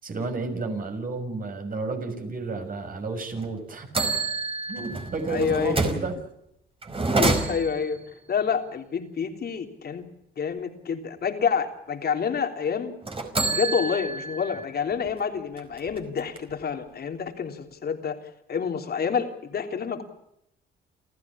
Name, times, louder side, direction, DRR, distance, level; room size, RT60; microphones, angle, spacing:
voice 1, 0.0-3.9 4.7-6.1, right 3 dB, 45° right, 5 dB, 6.7 m, -31 dB
sound 1, 3.3-3.5 3.9-6.1 6.8-7.9 13.0-14.6 15.1-15.2 15.6-16.6, right 3 dB, 30° right, 4.9 m, -27 dB
voice 2, 5.3-5.8 7.2-8.0 8.3-10.0 10.4-12.9 13.5-18.2 18.5-20.0, left 6 dB, 50° left, 5 dB, 3.5 m, -28 dB
29.0 x 14.5 x 8.7 m, 0.79 s
cardioid pair, 90°, 20 cm